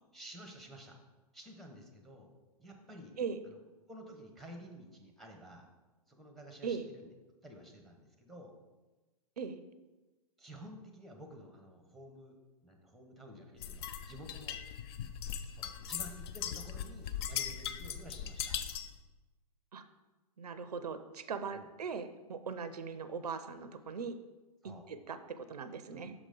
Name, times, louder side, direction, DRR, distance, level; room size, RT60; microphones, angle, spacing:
voice 1, 0.1-1.0 1.3-2.3 2.6-3.1 3.4-3.6 3.9-5.7 6.1-7.1 7.4-8.5 10.4-14.6 15.5-18.5 21.5-21.7 24.6-24.9 25.9-26.1, equal, ahead, 3 dB, 0.8 m, -52 dB
sound 1, 13.6-19.0, left 9 dB, 40° left, 0.4 m, -39 dB
voice 2, 20.4-24.2 24.9-26.1, right 5 dB, 75° right, 11 dB, 0.5 m, -40 dB
6.2 x 5.0 x 3.8 m, 1.2 s
figure-of-eight pair, 115°, 20 cm